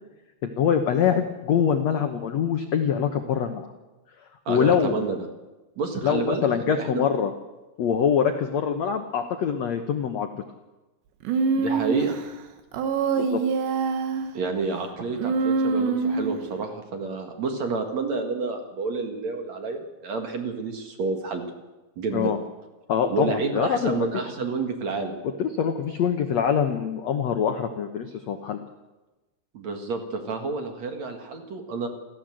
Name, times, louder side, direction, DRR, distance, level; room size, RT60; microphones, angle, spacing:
voice 1, 0.4-3.7 4.5-4.9 6.0-7.3 7.8-10.4 13.2-13.4 22.1-22.4 22.9-24.1 25.4-28.6, left 7 dB, 75° left, 6 dB, 1.6 m, -24 dB
voice 2, 4.5-5.2 5.8-7.0 11.5-12.2 14.3-21.4 22.0-22.3 23.1-25.2 29.5-31.9, right 4 dB, 50° right, 5 dB, 2.7 m, -29 dB
Human voice, 11.3-12.2 12.7-14.3 15.2-16.4, right 5 dB, 85° right, 4.0 m, -24 dB
29.0 x 14.5 x 7.8 m, 1.1 s
omnidirectional pair, 4.9 m